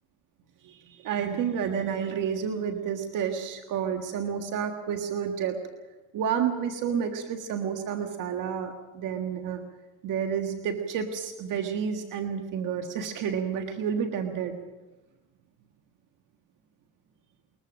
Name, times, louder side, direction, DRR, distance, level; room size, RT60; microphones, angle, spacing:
voice 1, 0.6-5.6 6.1-9.6 10.0-14.6, right 7 dB, 80° right, 4 dB, 1.7 m, -30 dB
22.0 x 21.0 x 6.3 m, 1.1 s
cardioid pair, 90°, 31 cm